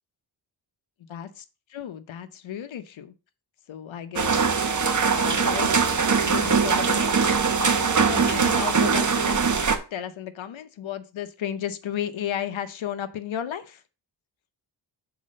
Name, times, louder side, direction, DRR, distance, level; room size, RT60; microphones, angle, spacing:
voice 1, 1.1-1.4 1.7-3.1 3.7-4.4 5.1-5.7 6.3-9.4 9.9-13.8, left 10 dB, 90° left, 10 dB, 0.9 m, -34 dB
sound 1, 4.2-9.8, right 5 dB, 40° right, 1.1 m, -22 dB
Wind instrument woodwind instrument, 4.5-9.5, right 4 dB, 50° left, 2.0 m, -40 dB
6.1 x 4.2 x 6.3 m, 0.32 s
wide cardioid pair, 90°, 46 cm